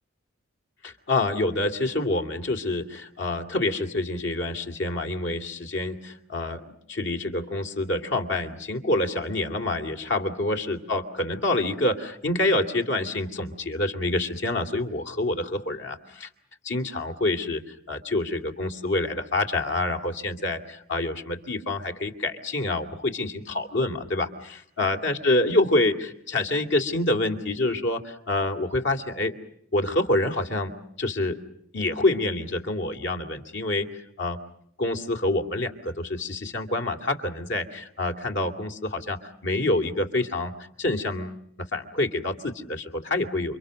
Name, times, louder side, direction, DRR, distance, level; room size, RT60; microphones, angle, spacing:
voice 1, 0.8-16.3 16.6-24.3 24.8-29.3 29.7-30.7 31.0-31.4 31.7-33.9 34.2-34.4 34.8-43.6, left 2 dB, 55° left, 6 dB, 2.6 m, -27 dB
29.5 x 26.0 x 6.5 m, 0.70 s
head